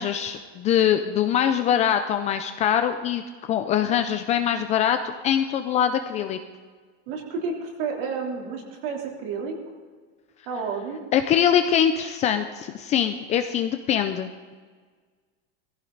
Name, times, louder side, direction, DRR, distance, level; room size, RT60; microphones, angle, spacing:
voice 1, 0.0-3.2 3.5-6.4 11.1-14.5, left 9 dB, 20° left, 8 dB, 0.4 m, -23 dB
voice 2, 7.1-9.5 10.5-11.0, right 5 dB, 55° right, 0 dB, 3.3 m, -30 dB
19.0 x 15.5 x 3.9 m, 1.5 s
supercardioid pair, 170°, 32 cm